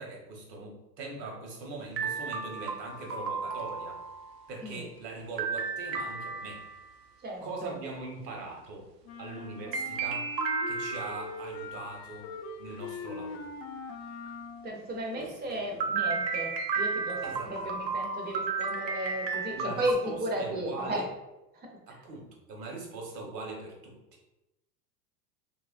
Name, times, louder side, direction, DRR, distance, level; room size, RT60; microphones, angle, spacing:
voice 1, 0.0-4.0 4.5-6.7 7.4-8.9 9.2-10.3 10.7-12.3 12.6-13.5 15.1-16.0 17.2-17.8 19.5-21.1 21.9-24.0, right 3 dB, 75° right, 0 dB, 1.1 m, -41 dB
sound 1, 2.0-4.4 5.4-7.0 9.7-11.4 15.8-19.9, right 5 dB, 90° right, 0.6 m, -33 dB
voice 2, 7.2-7.8 9.7-9.8 14.6-17.2 17.5-21.0 21.5-21.7, right 1 dB, 20° right, 1 dB, 0.5 m, -34 dB
sound 2, 9.0-14.8, left 4 dB, 55° left, 0.5 m, -42 dB
3.0 x 2.4 x 2.4 m, 0.96 s
hypercardioid pair, 95°, 49 cm